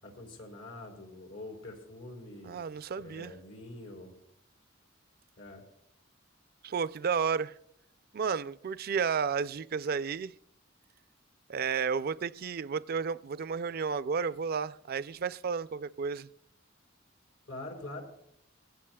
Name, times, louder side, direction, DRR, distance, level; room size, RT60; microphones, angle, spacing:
voice 1, 0.0-2.6 3.0-4.1 5.4-5.6 17.5-18.0, left 2 dB, 80° left, 5.1 m, -45 dB
voice 2, 2.4-3.3 6.6-7.5 8.1-10.3 11.5-16.3, right 6 dB, 50° right, 0.4 m, -32 dB
22.0 x 16.0 x 2.3 m
head